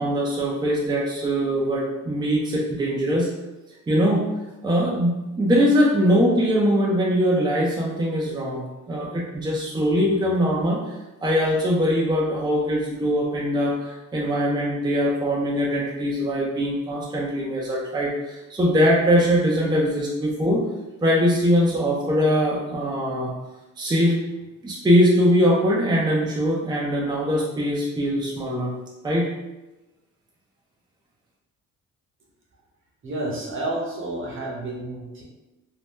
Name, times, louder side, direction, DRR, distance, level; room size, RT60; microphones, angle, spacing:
voice 1, 0.0-3.3 3.9-4.3 4.6-10.9 11.2-20.6 21.0-23.3 23.8-24.2 24.6-28.7 29.0-29.3, equal, 15° right, -4 dB, 0.5 m, -22 dB
voice 2, 33.0-35.2, right 2 dB, 40° right, -2 dB, 0.9 m, -30 dB
2.6 x 2.1 x 3.5 m, 1.0 s
cardioid pair, 90°, 30 cm